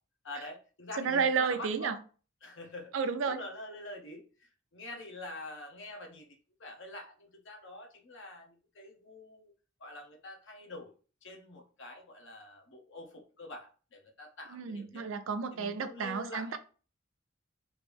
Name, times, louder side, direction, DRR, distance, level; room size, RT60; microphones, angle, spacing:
voice 1, 0.2-2.0 2.4-2.9 3.3-9.5 9.8-10.9 11.2-15.1 15.5-16.6, left 2 dB, 60° left, 0.8 m, -46 dB
voice 2, 1.0-2.0 2.9-3.4 14.5-16.6, right 5 dB, 65° right, 0.4 m, -31 dB
3.1 x 2.6 x 3.4 m
head